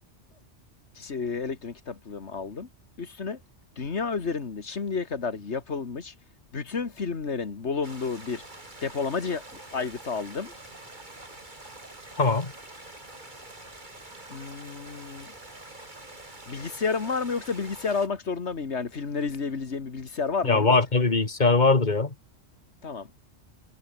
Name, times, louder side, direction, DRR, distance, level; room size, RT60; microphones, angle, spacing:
voice 1, 1.0-2.7 3.0-3.4 3.8-6.1 6.5-8.4 8.8-10.5 14.3-15.3 16.5-20.7 22.8-23.2, left 5 dB, 70° left, 2.1 m, -31 dB
sound 1, 7.8-18.1, right 2 dB, 40° right, 3.9 m, -46 dB
voice 2, 12.2-12.5 20.4-22.1, left 3 dB, 40° left, 2.2 m, -21 dB
omnidirectional pair, 1.2 m